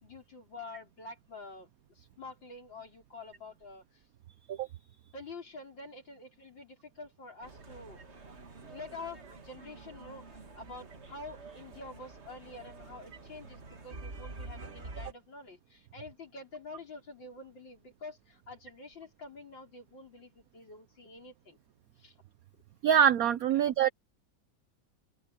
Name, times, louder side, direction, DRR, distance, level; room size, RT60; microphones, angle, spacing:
voice 1, 0.0-4.1 5.1-8.0 8.6-21.6 22.0-22.2 22.5-22.6 23.5-23.7, left 3 dB, 80° left, 5.6 m, -47 dB
sound 1, 7.4-15.1, right 3 dB, 35° right, 2.1 m, -48 dB
voice 2, 22.8-23.9, right 9 dB, 65° right, 1.0 m, -24 dB
open air
omnidirectional pair, 2.0 m